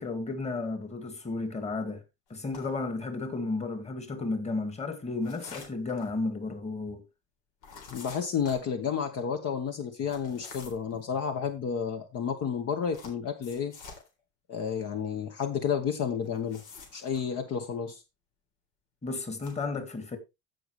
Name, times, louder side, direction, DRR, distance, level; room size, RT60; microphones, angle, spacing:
voice 1, 0.0-2.0 2.3-7.0 19.0-20.2, left 3 dB, 20° left, 1.9 m, -33 dB
sound 1, 2.4-2.8 5.2-6.1 7.6-8.7 10.0-10.9 12.9-14.1 16.2-17.2 19.3-19.6, left 5 dB, 80° left, 3.8 m, -47 dB
voice 2, 7.9-13.7 14.5-16.6 16.9-18.0, left 7 dB, 50° left, 1.3 m, -31 dB
16.0 x 5.4 x 3.2 m
cardioid pair, 130°, 31 cm